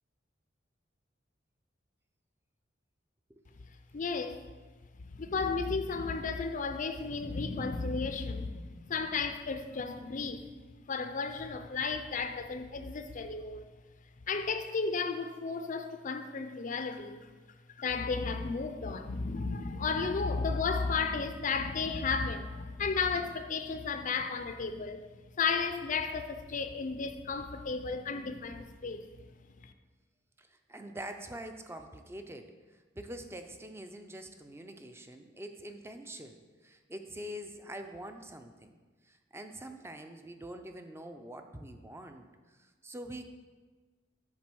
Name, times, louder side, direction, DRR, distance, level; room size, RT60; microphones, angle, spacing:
voice 1, 3.9-4.4 5.2-10.5 10.9-13.6 14.3-17.3 17.8-25.1 25.4-29.1 29.6-29.7, left 4 dB, 40° left, 0.5 m, -33 dB
voice 2, 30.4-38.7 39.1-42.3 42.6-43.3, right 1 dB, 15° right, 0.5 m, -45 dB
7.4 x 4.3 x 6.1 m
head